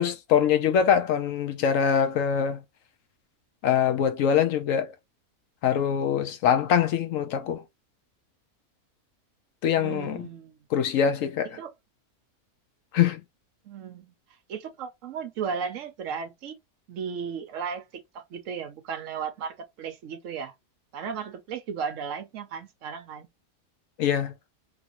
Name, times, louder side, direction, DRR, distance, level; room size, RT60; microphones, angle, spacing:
voice 1, 0.0-2.6 3.6-4.9 5.6-7.6 9.6-10.3 10.7-11.6 12.9-13.2 24.0-24.3, left 8 dB, 70° left, 0.9 m, -23 dB
voice 2, 9.8-10.6 11.6-11.7 13.7-14.1 14.5-16.6 16.9-17.9 18.1-20.5 20.9-23.3, right 6 dB, 65° right, 0.9 m, -35 dB
3.0 x 2.5 x 2.8 m
omnidirectional pair, 1.5 m